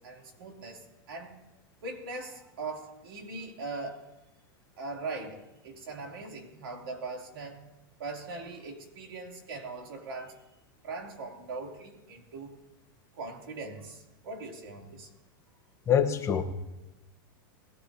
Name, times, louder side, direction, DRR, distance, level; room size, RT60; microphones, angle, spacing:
voice 1, 0.0-1.4 1.8-4.0 4.8-7.7 8.0-10.4 10.8-12.5 13.1-15.1, right 3 dB, 85° right, 1 dB, 2.8 m, -40 dB
voice 2, 15.9-16.4, left 8 dB, 25° left, 6 dB, 1.0 m, -24 dB
21.5 x 15.0 x 2.7 m, 1.0 s
supercardioid pair, 135°, 12 cm